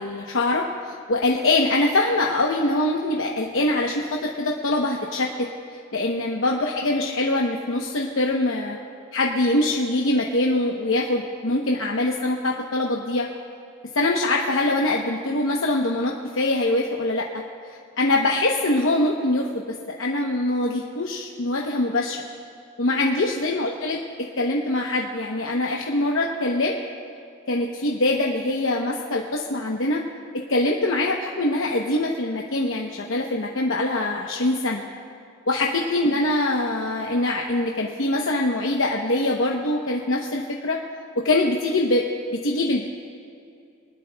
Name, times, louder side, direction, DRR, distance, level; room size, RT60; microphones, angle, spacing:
voice 1, 0.0-5.3 5.9-8.8 9.1-13.3 13.9-19.6 20.0-22.2 22.8-24.0 24.4-26.8 27.5-30.0 30.5-34.8 35.5-40.8 41.2-42.0 42.4-42.9, left 2 dB, 70° left, -1 dB, 0.9 m, -23 dB
23.0 x 19.5 x 2.3 m, 2.4 s
head